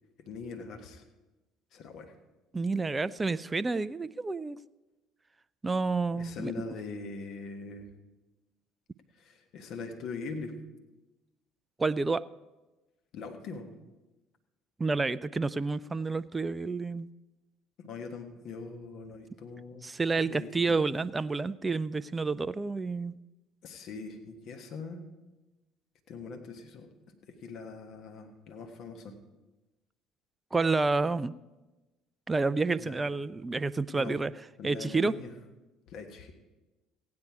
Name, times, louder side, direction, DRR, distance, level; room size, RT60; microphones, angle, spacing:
voice 1, 0.2-1.0 1.7-2.1 6.1-7.9 9.1-10.5 13.1-13.8 17.8-19.9 20.2-20.9 23.6-25.0 26.1-29.2 32.8-33.0 33.9-34.2 34.6-35.3 35.9-36.3, left 4 dB, 55° left, 4 dB, 1.3 m, -42 dB
voice 2, 2.5-4.6 5.6-6.5 11.8-12.3 14.8-17.1 19.8-23.2 30.5-31.3 32.3-34.3 34.6-35.1, right 3 dB, 20° right, 16 dB, 0.3 m, -29 dB
15.5 x 9.6 x 4.8 m, 1.1 s
figure-of-eight pair, 60°, 0 cm